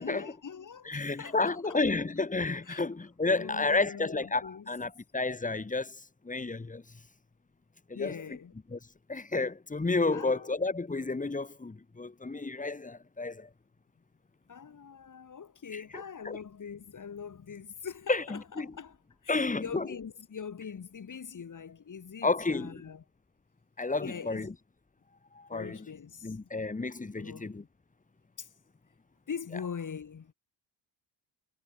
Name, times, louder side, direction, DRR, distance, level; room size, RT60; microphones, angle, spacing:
voice 1, 0.0-1.8 2.7-2.8 3.2-4.7 7.9-8.5 10.1-10.5 14.5-19.0 19.2-23.0 24.0-24.5 25.5-26.4 27.2-27.5 28.4-28.5 29.3-30.3, left 6 dB, 40° left, 7.3 m, -42 dB
voice 2, 0.9-6.8 7.9-8.1 8.7-8.8 9.1-13.5 16.2-16.4 18.1-18.7 19.3-19.9 22.2-22.8 23.8-24.5 25.3-25.8 26.2-27.6, left 3 dB, 15° left, 2.5 m, -31 dB
cardioid pair, 90°, 49 cm